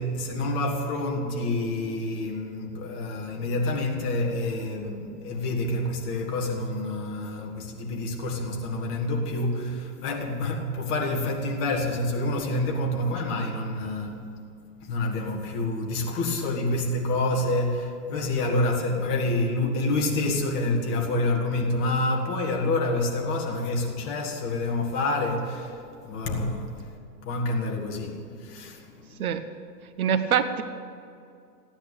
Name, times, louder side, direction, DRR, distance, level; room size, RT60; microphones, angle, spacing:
voice 1, 0.0-14.3 14.8-25.8 26.0-26.8 27.2-29.3, left 2 dB, 25° left, 2.0 m, -28 dB
voice 2, 30.0-30.6, right 8 dB, 60° right, 1.1 m, -24 dB
15.0 x 10.0 x 8.7 m
hypercardioid pair, 150°, 50 cm